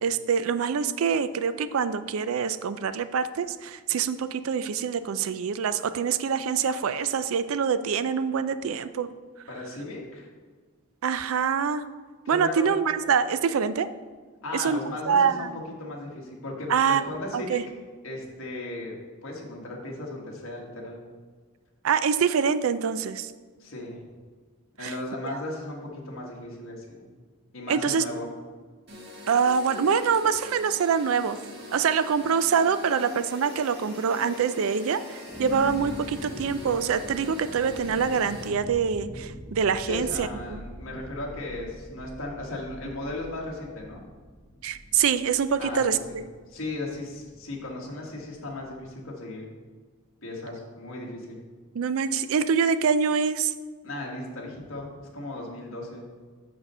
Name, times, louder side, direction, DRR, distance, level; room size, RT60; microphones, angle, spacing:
voice 1, 0.0-9.1 11.0-11.8 12.3-13.9 14.5-14.8 15.1-15.5 16.7-17.0 17.3-17.6 21.8-23.3 24.8-24.9 25.2-25.4 27.7-28.0 29.3-31.4 31.7-40.6 44.6-46.2 51.7-53.5, right 6 dB, 70° right, 13 dB, 0.4 m, -25 dB
voice 2, 9.5-10.3 12.2-12.8 14.4-15.5 15.8-17.6 18.0-18.9 19.2-21.0 23.6-24.0 24.8-27.1 27.5-28.3 39.9-44.0 45.6-45.8 46.1-46.2 46.5-49.5 50.2-51.4 53.8-56.1, left 2 dB, 60° left, -2 dB, 1.4 m, -36 dB
sound 1, 28.9-38.5, left 2 dB, 50° right, 1.6 m, -43 dB
sound 2, 35.3-48.9, equal, 10° left, 1.1 m, -43 dB
6.3 x 4.9 x 5.4 m, 1.5 s
head